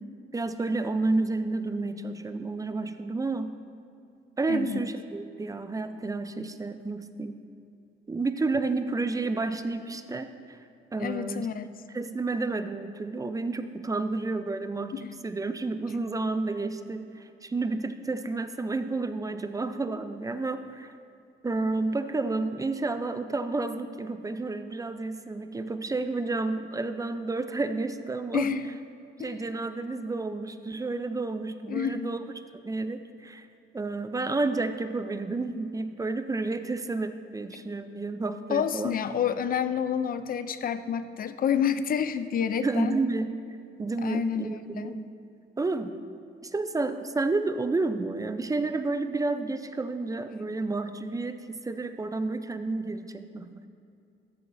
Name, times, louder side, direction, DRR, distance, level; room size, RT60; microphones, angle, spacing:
voice 1, 0.3-3.6 4.4-7.4 8.1-10.6 10.9-11.5 11.9-20.9 21.4-28.5 29.2-32.2 32.6-33.5 33.7-38.9 42.6-43.3 43.8-45.1 45.6-46.0 46.4-53.7, right 3 dB, 15° right, 9 dB, 0.5 m, -30 dB
voice 2, 4.5-4.8 11.0-11.7 14.9-15.1 28.3-28.7 29.2-29.5 31.7-32.1 38.5-43.0 44.0-44.5 44.7-45.0, left 8 dB, 45° left, 12 dB, 0.5 m, -29 dB
13.5 x 7.4 x 2.6 m, 2.6 s
cardioid pair, 90°, 20 cm